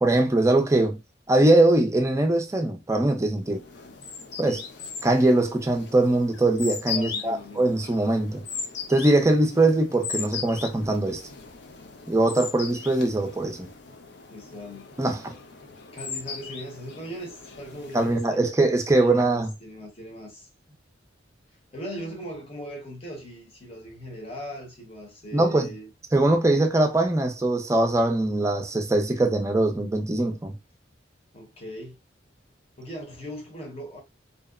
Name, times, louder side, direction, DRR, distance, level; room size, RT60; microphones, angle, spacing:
voice 1, 0.0-1.0 1.3-3.6 4.4-4.6 5.0-8.4 8.9-11.2 12.1-13.7 15.0-15.3 17.9-19.5 25.3-25.7 26.1-30.5, right 2 dB, 15° right, 0.4 m, -22 dB
sound 1, 3.5-18.4, left 6 dB, 60° left, 0.5 m, -38 dB
voice 2, 6.9-7.8 14.3-14.9 15.9-18.4 19.0-20.5 21.7-25.9 31.3-32.0 32.8-34.0, equal, 30° left, 0.8 m, -39 dB
2.7 x 2.0 x 2.3 m
head